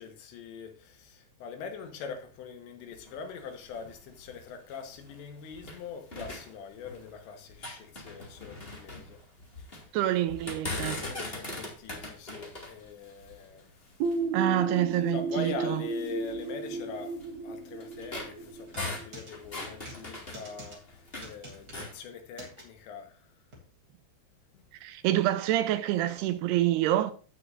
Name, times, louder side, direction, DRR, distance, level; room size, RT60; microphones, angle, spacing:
voice 1, 0.0-9.2 9.6-9.9 10.8-13.7 15.1-23.3, left 5 dB, 85° left, 3.5 m, -43 dB
sound 1, 2.9-5.8 6.1-7.2 7.5-9.9 10.3-14.3 14.9-15.0 15.5-15.6 16.4-21.3 21.6-22.0, left 2 dB, 25° left, 1.2 m, -40 dB
voice 2, 9.9-11.0 14.3-15.8 24.8-27.1, right 14 dB, 80° right, 2.5 m, -27 dB
sound 2, 14.0-19.6, right 3 dB, 65° right, 3.3 m, -34 dB
sound 3, 18.7-19.3 19.9-20.0 20.3-20.8 21.2-21.8 22.4-22.6 23.5-23.6, right 1 dB, 25° right, 3.0 m, -46 dB
16.5 x 6.5 x 2.6 m
omnidirectional pair, 5.0 m